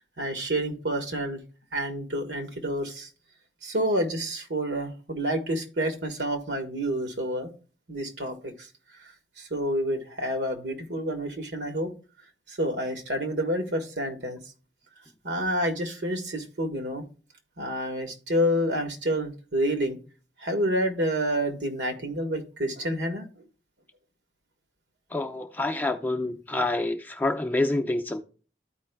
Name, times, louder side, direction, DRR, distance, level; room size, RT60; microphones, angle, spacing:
voice 1, 0.2-1.4 1.7-3.1 3.6-7.5 7.9-8.7 9.4-11.9 12.5-14.4 15.2-17.0 17.6-20.0 20.4-23.3, equal, 80° right, 1.3 m, -28 dB
voice 2, 25.1-28.2, left 2 dB, 10° left, 0.5 m, -27 dB
13.5 x 4.8 x 2.2 m
head